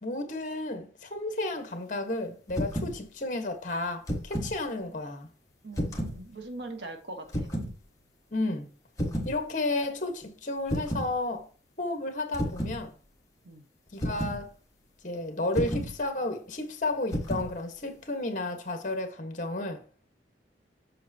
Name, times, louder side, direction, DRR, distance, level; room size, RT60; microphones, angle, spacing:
voice 1, 0.0-5.3 8.3-8.7 9.2-11.5 11.8-12.9 13.9-14.5 15.0-19.8, left 2 dB, 45° left, 1.3 m, -32 dB
sound 1, 2.5-3.0 3.9-4.6 5.7-6.2 7.3-7.7 9.0-9.4 10.7-11.1 12.3-12.8 14.0-14.4 15.5-15.9 17.1-17.5, equal, 20° left, 1.5 m, -31 dB
voice 2, 5.6-7.5 13.4-13.7, right 2 dB, 75° right, 1.1 m, -41 dB
7.6 x 6.6 x 2.8 m
head